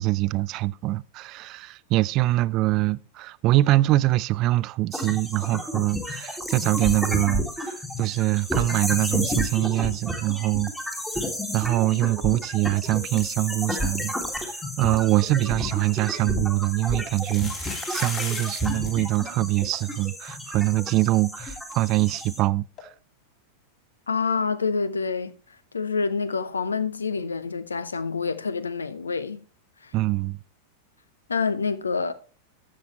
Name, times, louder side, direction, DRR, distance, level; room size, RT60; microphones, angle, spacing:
voice 1, 0.0-10.7 11.2-11.3 11.5-22.9 29.9-30.4, right 17 dB, 40° right, 0.3 m, -24 dB
sound 1, 4.9-22.4, left 1 dB, 5° left, 1.9 m, -32 dB
sound 2, 15.9-16.0 17.1-18.9 19.2-19.3 19.4-19.7 20.3-20.4 20.6-20.7 22.8-22.9, left 4 dB, 30° left, 2.6 m, -36 dB
voice 2, 24.1-25.3 25.7-29.4 29.8-29.9 31.3-32.1, left 5 dB, 75° left, 0.7 m, -27 dB
12.5 x 7.6 x 3.2 m
figure-of-eight pair, 90°, 0 cm